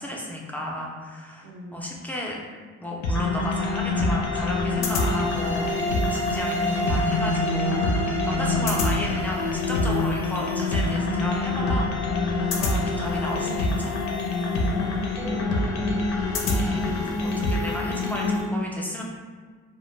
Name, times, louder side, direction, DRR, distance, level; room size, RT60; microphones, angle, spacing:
voice 1, 0.0-2.4 2.8-11.9 12.5-13.9 16.4-19.0, left 1 dB, 5° left, -3 dB, 0.4 m, -33 dB
voice 2, 1.4-1.9 13.2-13.5 14.7-16.3, right 1 dB, 45° right, -5 dB, 0.5 m, -41 dB
sound 1, 3.0-18.4, left 3 dB, 65° left, 0.5 m, -25 dB
sound 2, 4.8-9.6, right 2 dB, 80° right, 0.8 m, -31 dB
2.1 x 2.1 x 3.1 m, 1.5 s
cardioid pair, 90°, 30 cm